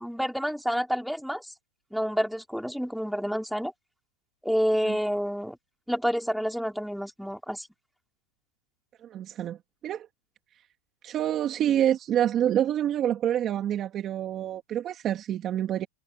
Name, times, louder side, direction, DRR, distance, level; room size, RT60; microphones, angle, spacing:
voice 1, 0.0-1.5 1.9-3.7 4.4-5.6 5.9-7.7, equal, ahead, 4.5 m, -28 dB
voice 2, 9.0-10.1 11.0-15.9, right 11 dB, 25° right, 2.0 m, -27 dB
supercardioid pair, 145°, 0 cm